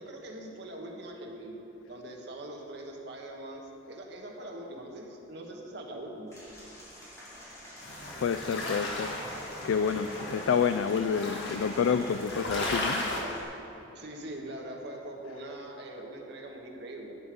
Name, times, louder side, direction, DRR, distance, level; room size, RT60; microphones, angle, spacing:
voice 1, 0.0-1.6 1.9-6.3 13.9-17.1, right 1 dB, 55° right, 1 dB, 1.3 m, -42 dB
Applause / Crowd, 6.3-13.4, equal, 15° left, 2.4 m, -47 dB
sound 1, 7.8-13.2, left 1 dB, 60° left, 1.7 m, -36 dB
voice 2, 8.2-9.2 9.6-13.1, left 6 dB, 80° left, 10 dB, 0.3 m, -28 dB
11.0 x 8.6 x 5.2 m, 3.0 s
head